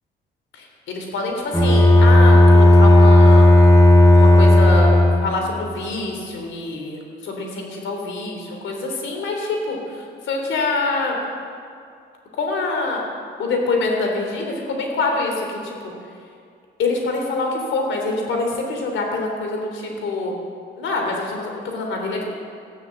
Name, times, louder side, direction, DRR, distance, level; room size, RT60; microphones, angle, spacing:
voice 1, 0.5-3.4 4.1-4.9 5.2-11.2 12.3-13.0 13.4-15.7 16.8-20.4 20.8-22.3, left 3 dB, 75° left, 1 dB, 3.3 m, -25 dB
Bowed string instrument, 1.5-5.5, left 1 dB, 15° left, 2.5 m, -11 dB
13.0 x 10.0 x 7.8 m, 2.3 s
cardioid pair, 90°, 20 cm